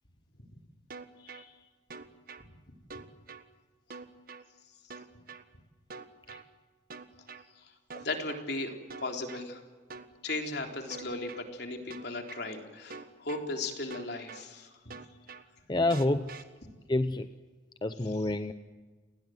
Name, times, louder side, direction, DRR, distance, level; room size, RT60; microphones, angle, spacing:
sound 1, 0.9-1.4 1.9-2.4 2.9-3.4 3.9-4.4 4.9-5.4 5.9-6.4 6.9-7.4 7.9-8.4 8.9-9.4 9.9-10.4 10.9-11.4 11.9-12.4 12.9-13.4 13.9-14.4 14.9-15.4 15.9-16.4, right 4 dB, 50° right, 1.5 m, -45 dB
voice 1, 1.2-1.5 2.4-2.5 7.6-7.7 8.0-9.6 10.2-14.9 16.6-16.7 18.0-18.3, left 2 dB, 60° left, 3 dB, 3.7 m, -37 dB
voice 2, 15.7-16.3 16.9-17.3 17.8-18.5, left 2 dB, 25° left, 10 dB, 0.7 m, -28 dB
29.5 x 20.0 x 7.8 m, 1.4 s
head